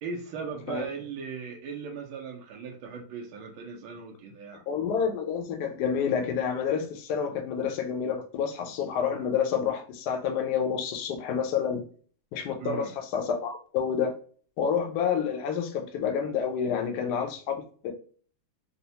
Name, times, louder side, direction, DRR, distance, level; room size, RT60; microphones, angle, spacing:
voice 1, 0.0-4.6 12.6-12.9, right 5 dB, 85° right, 1.4 m, -38 dB
voice 2, 4.7-11.8 12.3-14.1 14.6-17.9, left 7 dB, 70° left, 1.0 m, -29 dB
4.1 x 2.0 x 2.7 m
omnidirectional pair, 2.2 m